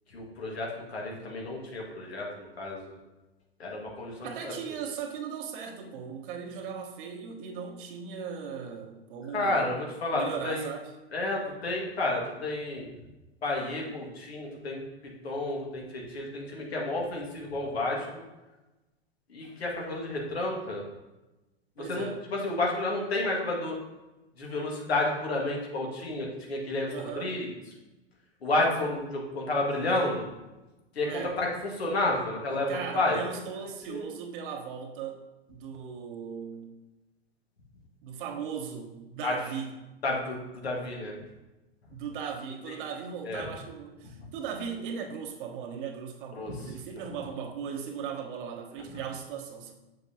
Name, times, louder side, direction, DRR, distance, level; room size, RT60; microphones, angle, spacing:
voice 1, 0.1-3.0 3.6-4.5 9.3-10.7 11.1-12.9 13.4-14.8 15.2-18.1 19.3-20.8 21.8-23.8 24.4-27.5 28.4-30.3 31.0-33.4 33.9-34.1 39.2-39.3 40.0-41.1 42.7-42.8 43.2-43.4 44.2-44.3 46.4-46.6 47.0-47.1 48.9-49.0, left 2 dB, 80° left, -1 dB, 1.9 m, -31 dB
voice 2, 4.2-9.8 10.1-10.9 21.8-22.2 26.9-27.4 31.0-31.4 32.7-35.2 35.5-36.7 38.0-39.7 41.9-49.7, right 7 dB, 55° right, 3 dB, 1.1 m, -38 dB
7.1 x 6.5 x 2.8 m, 1.1 s
hypercardioid pair, 105°, 31 cm